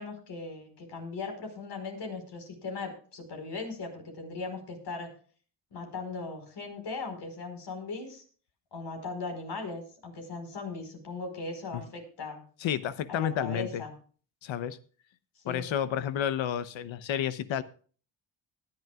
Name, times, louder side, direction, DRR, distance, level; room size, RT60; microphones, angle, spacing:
voice 1, 0.0-5.1 5.7-8.2 8.7-12.4 13.1-13.9 15.4-15.7, left 3 dB, 65° left, 4 dB, 4.9 m, -38 dB
voice 2, 12.6-13.8 14.4-14.8 15.5-17.6, left 9 dB, 85° left, 13 dB, 1.0 m, -31 dB
19.5 x 11.0 x 2.4 m, 0.42 s
cardioid pair, 100°, 45 cm